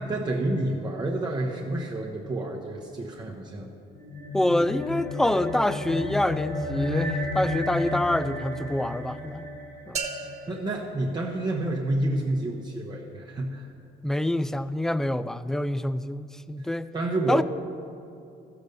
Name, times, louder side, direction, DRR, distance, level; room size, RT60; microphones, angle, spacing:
voice 1, 0.0-3.7 10.5-13.7 16.9-17.4, right 2 dB, 25° right, -1 dB, 1.0 m, -29 dB
sound 1, 3.9-10.6, left 2 dB, 75° left, 1.7 m, -33 dB
voice 2, 4.3-9.5 9.9-10.0 14.0-16.9 17.3-17.4, left 1 dB, 5° left, 14 dB, 0.3 m, -26 dB
sound 2, 9.9-11.9, right 4 dB, 40° right, 1.4 m, -37 dB
13.0 x 6.9 x 6.7 m, 2.5 s
cardioid pair, 110°, 17 cm